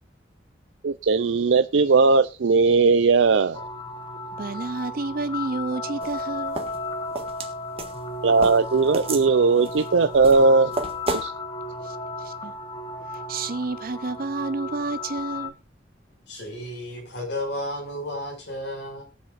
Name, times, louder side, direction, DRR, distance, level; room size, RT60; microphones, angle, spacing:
voice 1, 0.8-3.6 8.2-10.7 11.1-11.3, right 4 dB, 90° right, 0.5 m, -18 dB
sound 1, 3.5-15.5, left 2 dB, 25° left, 1.1 m, -34 dB
voice 2, 4.4-6.6 11.8-12.6 13.1-15.5, right 3 dB, 55° right, 0.7 m, -30 dB
sound 2, 6.0-11.3, right 3 dB, 35° right, 1.6 m, -32 dB
voice 3, 16.3-19.0, left 1 dB, 65° left, 6.2 m, -32 dB
22.0 x 7.4 x 2.5 m
head